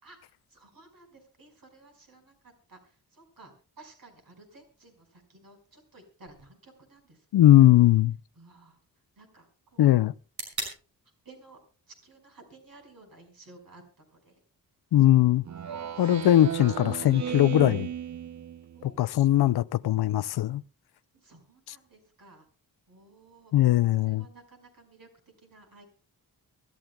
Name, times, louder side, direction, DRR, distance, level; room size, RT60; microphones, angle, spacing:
voice 1, 0.0-7.6 8.4-8.8 9.2-10.0 11.2-11.6 11.9-14.4 15.0-15.1 15.6-16.2 18.7-19.1 21.1-22.5 22.9-23.5 24.0-25.1 25.4-25.9, right 3 dB, 65° right, 5.2 m, -55 dB
sound 1, 6.3-14.2, right 3 dB, 90° right, 5.7 m, -46 dB
voice 2, 7.3-8.1 9.8-10.1 14.9-15.4 16.0-17.9 18.8-20.6 23.5-24.2, left 14 dB, 85° left, 0.5 m, -20 dB
Speech synthesizer, 15.5-19.0, right 9 dB, 50° right, 0.7 m, -35 dB
24.5 x 13.0 x 2.3 m
wide cardioid pair, 100°, 38 cm